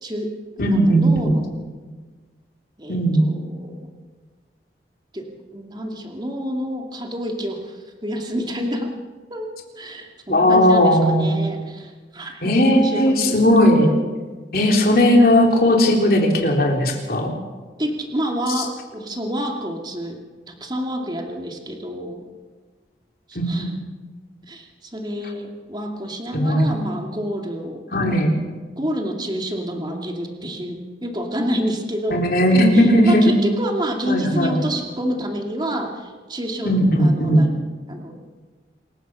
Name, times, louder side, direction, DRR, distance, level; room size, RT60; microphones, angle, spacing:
voice 1, 0.0-1.5 2.8-3.9 5.1-8.9 9.3-9.5 9.8-13.4 14.5-14.8 17.8-20.2 20.5-22.3 23.3-23.8 24.5-28.2 28.8-32.2 32.5-37.5 37.9-38.2, equal, 25° right, 2 dB, 2.4 m, -28 dB
voice 2, 0.6-1.3 2.9-3.2 10.3-11.4 12.4-13.9 14.5-17.3 23.4-23.7 26.3-26.7 27.9-28.3 32.1-33.4 34.1-34.6 36.6-37.4, equal, 55° left, 1 dB, 3.7 m, -17 dB
27.0 x 15.5 x 6.3 m, 1.4 s
head